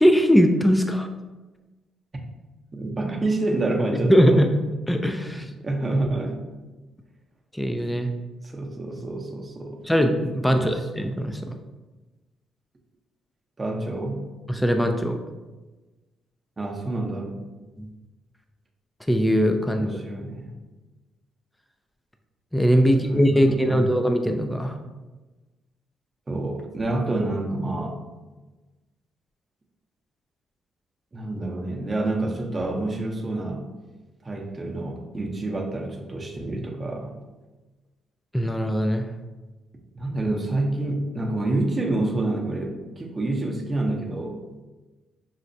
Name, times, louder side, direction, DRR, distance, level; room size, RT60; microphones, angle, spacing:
voice 1, 0.0-1.1 4.1-4.5 4.9-5.5 7.5-8.1 9.9-11.5 14.5-15.2 17.8-17.9 19.1-19.9 22.5-24.8 38.3-39.0, equal, 5° left, 5 dB, 0.3 m, -20 dB
voice 2, 2.7-4.5 5.3-6.4 8.4-9.8 10.5-10.9 13.6-14.2 16.6-17.4 19.7-20.6 22.8-23.9 26.3-28.0 31.1-33.7 34.2-37.2 39.9-44.4, right 2 dB, 25° right, 0 dB, 0.7 m, -28 dB
5.7 x 2.1 x 2.6 m, 1.2 s
cardioid pair, 90°, 0 cm